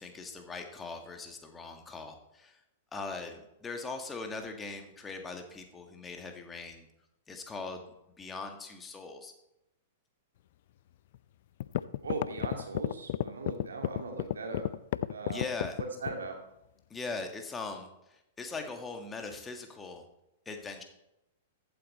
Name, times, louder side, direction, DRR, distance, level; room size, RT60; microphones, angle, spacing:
voice 1, 0.0-2.6 2.9-6.9 7.3-9.3 15.3-15.8 16.9-20.0 20.5-20.8, left 3 dB, 15° left, 4 dB, 1.8 m, -41 dB
sound 1, 11.1-11.2 11.6-16.3, left 14 dB, 50° left, 0.4 m, -31 dB
voice 2, 12.0-14.7 15.1-15.5 15.8-16.4, right 3 dB, 70° right, 3 dB, 2.5 m, -39 dB
14.5 x 8.6 x 4.3 m, 0.86 s
figure-of-eight pair, 100°, 0 cm